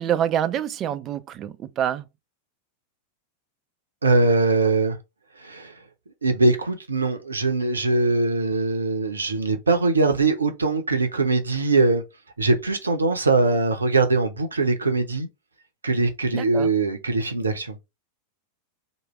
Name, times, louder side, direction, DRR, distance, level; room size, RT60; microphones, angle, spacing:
voice 1, 0.0-2.0 16.3-16.7, right 10 dB, 30° right, 0.4 m, -26 dB
voice 2, 4.0-5.0 5.4-5.8 6.2-12.0 12.4-15.3 15.8-17.8, right 3 dB, 75° right, 0.7 m, -22 dB
3.1 x 2.6 x 4.3 m
figure-of-eight pair, 90°, 0 cm